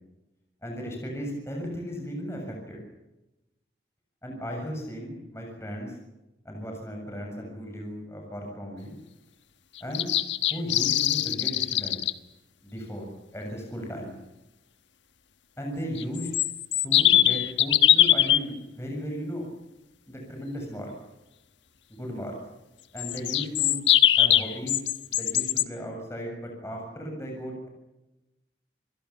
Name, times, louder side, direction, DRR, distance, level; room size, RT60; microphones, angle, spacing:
voice 1, 0.6-2.8 4.2-5.9 6.4-9.0 9.8-10.1 10.5-12.0 12.6-14.1 15.6-16.3 16.8-19.5 20.1-20.9 21.9-22.4 22.9-23.8 24.1-24.8 25.1-27.7, equal, 15° left, 1 dB, 7.2 m, -36 dB
sound 1, 9.8-12.1 16.0-18.4 23.0-25.6, left 12 dB, 80° left, 1.3 m, -22 dB
28.5 x 22.0 x 7.3 m, 0.96 s
head